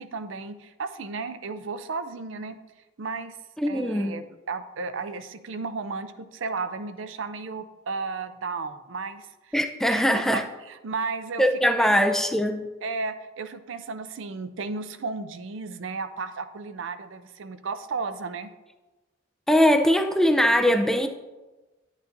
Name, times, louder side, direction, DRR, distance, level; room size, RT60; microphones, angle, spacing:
voice 1, 0.0-2.6 3.0-3.4 3.7-9.5 9.9-11.5 11.8-11.9 12.8-18.5, right 4 dB, 70° right, 0.5 m, -34 dB
voice 2, 3.6-4.1 9.5-10.4 11.4-12.7 19.5-21.1, equal, ahead, 0.4 m, -21 dB
9.9 x 8.3 x 2.6 m
head